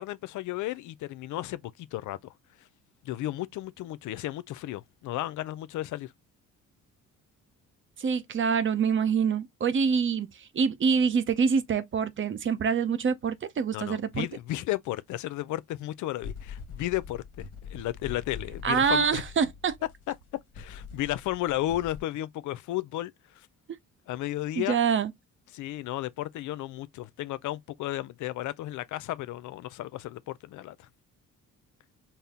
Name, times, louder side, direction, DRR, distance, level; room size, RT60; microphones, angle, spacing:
voice 1, 0.0-2.3 3.0-6.1 13.7-17.2 17.7-19.2 20.1-20.2 20.6-23.5 24.1-24.8 25.5-30.9, left 15 dB, 75° left, 0.5 m, -33 dB
voice 2, 8.0-10.3 10.5-14.3 18.6-19.8 24.6-25.1, right 6 dB, 40° right, 0.7 m, -25 dB
sound 1, 14.8-14.9 16.2-22.0, left 6 dB, 55° left, 1.0 m, -43 dB
4.2 x 2.0 x 3.5 m
cardioid pair, 90°, 30 cm